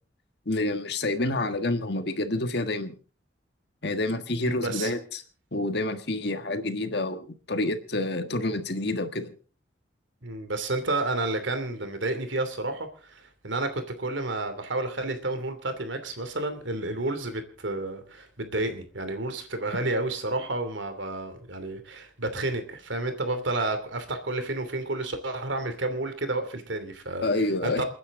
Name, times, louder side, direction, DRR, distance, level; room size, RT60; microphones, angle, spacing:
voice 1, 0.4-2.9 3.8-5.2 5.5-9.3 27.2-27.8, left 2 dB, 60° left, 8 dB, 1.6 m, -28 dB
voice 2, 4.4-4.9 10.2-27.3 27.6-27.8, right 2 dB, 80° right, 8 dB, 2.9 m, -30 dB
29.0 x 9.9 x 3.8 m, 0.38 s
head